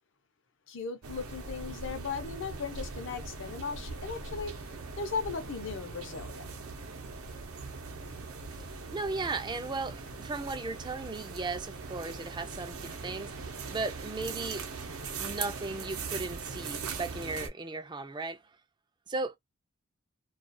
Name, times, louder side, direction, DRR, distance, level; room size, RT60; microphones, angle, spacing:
voice 1, 0.7-4.6 5.0-6.5, left 5 dB, 60° left, 0.7 m, -37 dB
sound 1, 1.0-17.5, right 4 dB, 80° right, 0.7 m, -40 dB
voice 2, 8.9-14.7 15.2-18.4 19.1-19.3, right 3 dB, 20° right, 0.4 m, -36 dB
2.4 x 2.3 x 2.5 m
head